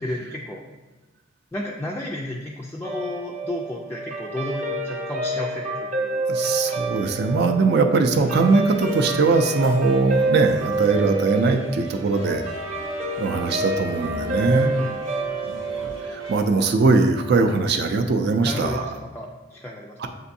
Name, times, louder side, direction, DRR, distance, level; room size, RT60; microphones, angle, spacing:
voice 1, 0.0-0.6 1.5-6.2 14.4-15.0 18.4-20.0, left 1 dB, 10° left, -2 dB, 0.3 m, -32 dB
Guitar, 2.8-17.4, right 2 dB, 40° right, 0.8 m, -29 dB
voice 2, 6.3-12.4 13.2-14.7 15.4-18.9 20.0-20.1, right 3 dB, 60° right, 5 dB, 0.4 m, -21 dB
sound 1, 8.1-16.4, right 1 dB, 90° right, 0.9 m, -44 dB
sound 2, 12.1-17.6, left 1 dB, 90° left, 0.5 m, -41 dB
7.7 x 2.6 x 2.7 m, 1.2 s
head